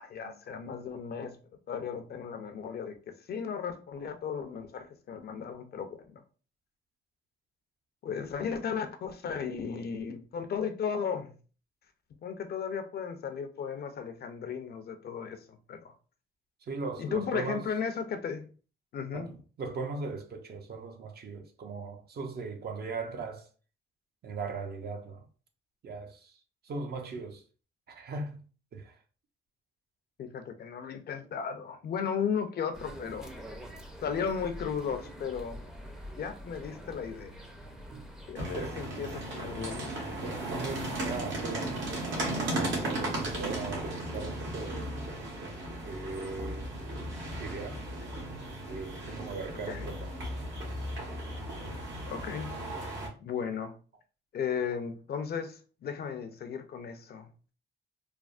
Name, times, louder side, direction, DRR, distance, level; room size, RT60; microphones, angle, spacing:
voice 1, 0.0-1.4 1.7-2.9 3.3-6.2 8.0-11.4 12.2-15.9 17.0-18.5 18.9-19.3 30.2-33.3 34.0-35.7 36.2-37.3 38.3-40.0 49.7-49.9 52.1-52.6 52.8-52.9 53.2-53.7 54.3-57.5, left 6 dB, 55° left, 0.5 m, -35 dB
voice 2, 16.6-17.7 19.1-23.5 24.2-25.2 25.8-26.3 26.6-27.4 27.9-28.4 28.7-28.9 37.9-38.0 38.5-38.8 40.2-42.3 42.8-45.0 45.8-46.7 47.4-47.8 48.7-50.1, right 4 dB, 55° right, 0.6 m, -39 dB
sound 1, 32.7-38.4, equal, 5° right, 0.5 m, -45 dB
sound 2, 38.3-53.1, right 1 dB, 70° right, 1.2 m, -36 dB
3.3 x 2.0 x 2.4 m
cardioid pair, 90°, 20 cm